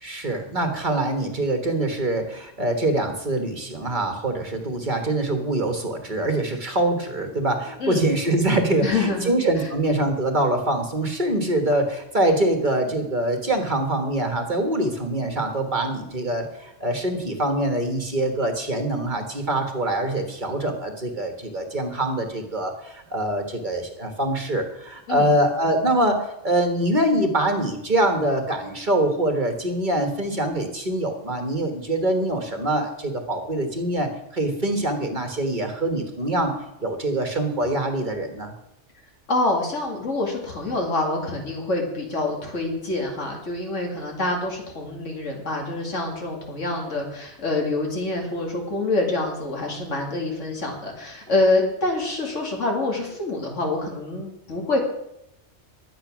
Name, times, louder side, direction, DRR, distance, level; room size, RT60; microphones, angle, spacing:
voice 1, 0.0-36.5 36.8-38.5, right 1 dB, 40° right, 4 dB, 1.6 m, -24 dB
voice 2, 8.8-9.3 9.6-9.7 25.1-25.3 39.3-54.8, left 2 dB, 80° left, 0 dB, 2.6 m, -26 dB
11.5 x 9.1 x 6.1 m, 0.84 s
omnidirectional pair, 1.2 m